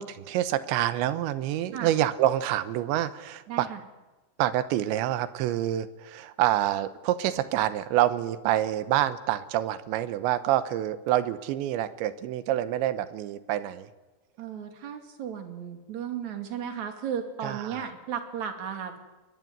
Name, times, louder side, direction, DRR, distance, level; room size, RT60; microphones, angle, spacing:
voice 1, 0.0-3.7 4.4-13.9 17.4-17.9, right 13 dB, 85° right, 13 dB, 3.3 m, -27 dB
voice 2, 3.5-3.8 14.4-19.0, right 8 dB, 45° right, 6 dB, 3.5 m, -35 dB
22.0 x 21.5 x 9.6 m, 1.1 s
omnidirectional pair, 5.2 m